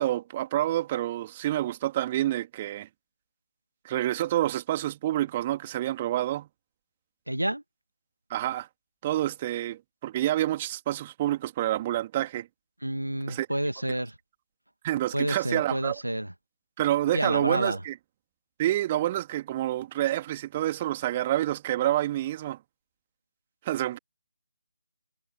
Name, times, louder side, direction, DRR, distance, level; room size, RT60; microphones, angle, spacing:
voice 1, 0.0-2.9 3.8-6.5 8.3-8.7 9.0-12.5 13.3-13.5 14.8-16.0 16.8-18.0 18.6-22.6 23.6-24.0, right 14 dB, 20° right, 2.4 m, -28 dB
voice 2, 7.3-7.6 12.8-14.1 15.1-16.3 17.1-17.8, right 1 dB, 80° right, 1.9 m, -29 dB
figure-of-eight pair, 150°, 0 cm